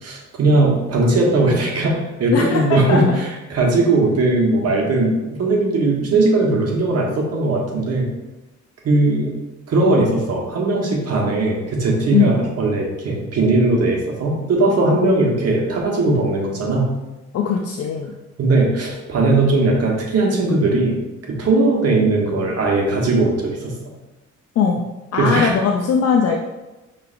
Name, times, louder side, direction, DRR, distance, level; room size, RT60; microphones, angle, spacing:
voice 1, 0.0-8.1 8.8-9.3 9.7-16.9 18.4-23.7 25.1-25.5, right 2 dB, 55° right, -1 dB, 1.2 m, -18 dB
voice 2, 2.3-3.2 12.1-12.4 17.3-18.1 24.6-24.8 25.1-26.4, left 6 dB, 55° left, 1 dB, 0.5 m, -19 dB
5.7 x 3.2 x 2.5 m, 1.1 s
cardioid pair, 90°, 30 cm